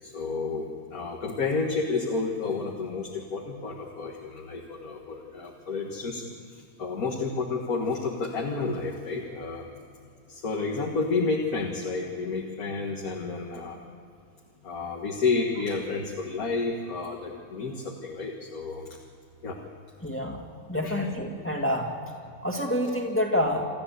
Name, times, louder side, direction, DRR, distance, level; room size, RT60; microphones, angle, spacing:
voice 1, 0.0-9.7 10.3-13.8 14.6-18.9 19.4-19.6 20.8-21.0, left 4 dB, 75° left, 0 dB, 2.2 m, -30 dB
voice 2, 20.0-20.4 20.7-21.9 22.4-23.6, equal, 10° left, 0 dB, 2.2 m, -27 dB
27.5 x 13.0 x 8.3 m, 2.4 s
omnidirectional pair, 1.6 m